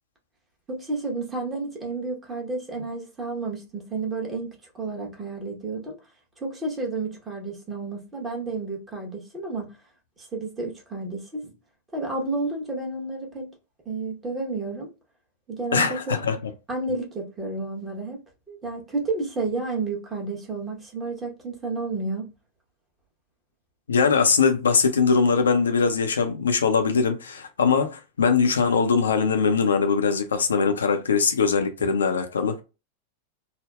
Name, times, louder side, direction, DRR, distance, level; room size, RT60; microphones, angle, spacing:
voice 1, 0.7-6.0 6.4-9.7 10.2-11.5 11.9-13.5 13.8-14.9 15.5-16.2 16.7-18.2 18.5-22.3, right 3 dB, 20° right, 1.0 m, -31 dB
voice 2, 15.7-16.4 23.9-32.6, left 5 dB, 70° left, 0.4 m, -21 dB
3.4 x 2.0 x 2.3 m
figure-of-eight pair, 90°, 0 cm